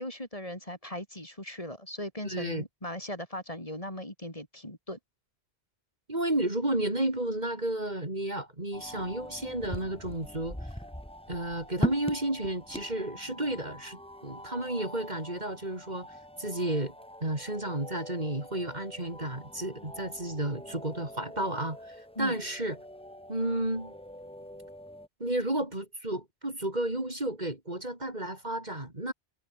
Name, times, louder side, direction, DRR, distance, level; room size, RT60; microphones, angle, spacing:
voice 1, 0.0-5.0 22.2-22.4, left 1 dB, 35° left, 6.1 m, -38 dB
voice 2, 2.2-2.6 6.1-10.7 11.3-16.9 17.2-22.8 23.3-23.9 25.2-29.1, right 1 dB, 45° right, 4.2 m, -32 dB
sound 1, 8.7-25.1, equal, 5° left, 1.9 m, -42 dB
omnidirectional pair, 1.1 m